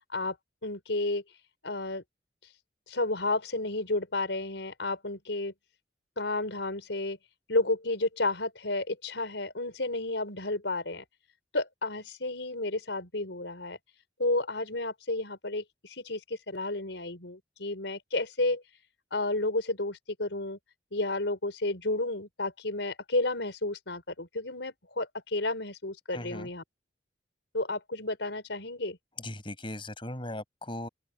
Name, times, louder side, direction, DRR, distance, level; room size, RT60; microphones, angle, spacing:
voice 1, 0.6-1.2 1.6-2.0 2.9-5.5 6.2-7.2 7.5-11.0 11.5-13.8 14.2-18.6 19.1-20.6 20.9-26.6 27.5-29.0, left 2 dB, 80° left, 4.8 m, -31 dB
voice 2, 26.1-26.5 29.2-30.9, left 1 dB, 30° left, 7.0 m, -38 dB
open air
head